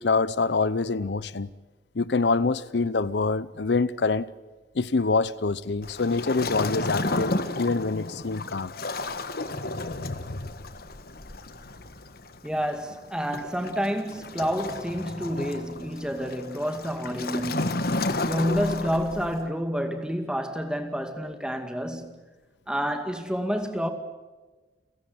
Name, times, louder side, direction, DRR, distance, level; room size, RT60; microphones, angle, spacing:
voice 1, 0.0-1.5 2.0-4.3 4.7-8.7, left 3 dB, 75° left, 0.7 m, -25 dB
Waves surf, 5.8-19.5, left 2 dB, 60° left, 1.5 m, -32 dB
voice 2, 12.4-17.8 18.2-22.2 22.7-23.9, equal, 5° right, 2.2 m, -29 dB
29.5 x 16.5 x 9.4 m
head